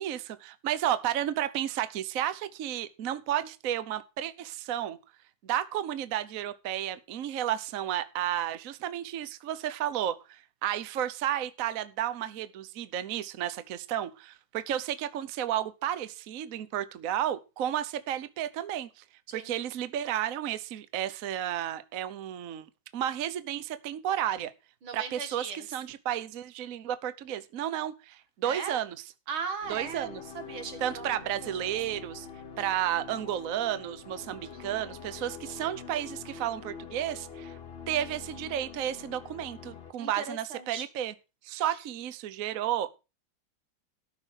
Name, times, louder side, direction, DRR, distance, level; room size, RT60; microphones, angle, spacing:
voice 1, 0.0-5.0 5.4-19.0 19.3-22.7 22.9-24.5 24.9-29.0 29.7-30.2 30.8-32.3 32.6-37.6 37.9-41.1 41.4-42.9, right 11 dB, 55° right, 1.0 m, -32 dB
voice 2, 24.8-25.7 28.4-28.8 29.3-31.7 40.0-40.9 41.6-41.8, right 5 dB, 85° right, 2.6 m, -39 dB
sound 1, 29.6-39.9, left 6 dB, 35° left, 1.1 m, -45 dB
13.5 x 6.1 x 6.3 m
omnidirectional pair, 2.2 m